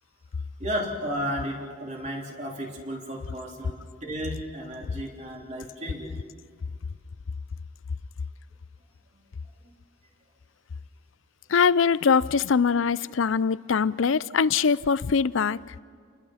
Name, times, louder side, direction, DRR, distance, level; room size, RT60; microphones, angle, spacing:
voice 1, 0.6-3.7 4.0-6.1, equal, 35° right, 3.3 m, -33 dB
voice 2, 11.5-15.6, left 6 dB, 80° left, 0.5 m, -22 dB
29.5 x 21.0 x 5.8 m
head